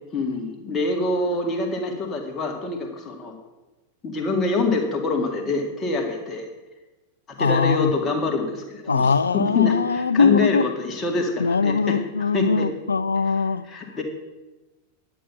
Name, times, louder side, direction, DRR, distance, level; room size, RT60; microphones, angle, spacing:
voice 1, 0.1-3.4 4.0-6.5 7.4-12.0 12.3-12.7 13.7-14.0, left 3 dB, 20° left, 1 dB, 2.0 m, -25 dB
voice 2, 7.4-7.9 8.9-10.7 11.4-13.6, left 5 dB, 75° left, 16 dB, 0.4 m, -21 dB
9.9 x 8.4 x 5.5 m, 1.1 s
figure-of-eight pair, 90°, 0 cm